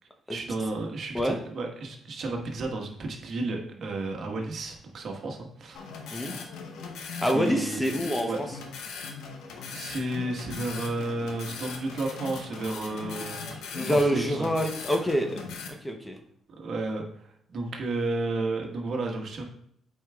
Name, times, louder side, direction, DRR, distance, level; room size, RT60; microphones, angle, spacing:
voice 1, 0.3-6.0 7.3-7.8 8.3-8.4 9.7-13.5 13.9-14.4 16.6-17.0 17.5-19.4, right 2 dB, 60° right, 2 dB, 1.3 m, -32 dB
sound 1, 5.7-15.7, left 5 dB, 85° left, 0.9 m, -39 dB
voice 2, 7.2-8.5 13.7-16.2, equal, 5° left, 4 dB, 0.8 m, -27 dB
8.5 x 4.7 x 2.3 m, 0.70 s
cardioid pair, 90°, 0 cm